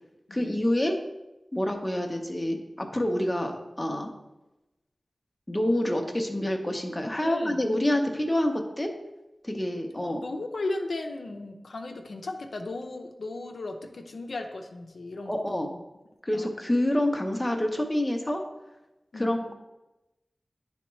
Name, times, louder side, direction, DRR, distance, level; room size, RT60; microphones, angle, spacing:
voice 1, 0.3-1.0 1.5-4.1 5.5-8.9 9.4-10.2 15.3-15.7 16.3-18.4 19.1-19.5, left 1 dB, 15° left, 3 dB, 0.8 m, -27 dB
voice 2, 7.2-7.6 10.0-15.8 16.3-16.5 19.1-19.5, left 2 dB, 80° left, 3 dB, 0.5 m, -36 dB
10.5 x 3.5 x 3.1 m, 1.0 s
wide cardioid pair, 85°, 0 cm